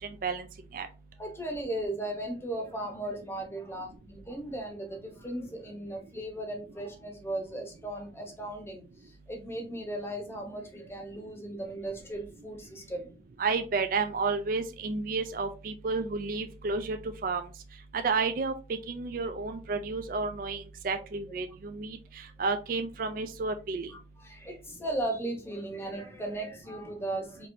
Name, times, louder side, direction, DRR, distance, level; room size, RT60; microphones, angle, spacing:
voice 1, 1.2-13.2 15.9-16.0 23.9-27.5, right 1 dB, 15° left, 3 dB, 0.8 m, -37 dB
voice 2, 13.4-17.0 17.2-17.4 17.9-18.5 18.9-22.0 22.4-23.9, right 4 dB, 50° right, 7 dB, 0.4 m, -31 dB
4.4 x 3.0 x 2.6 m, 0.33 s
head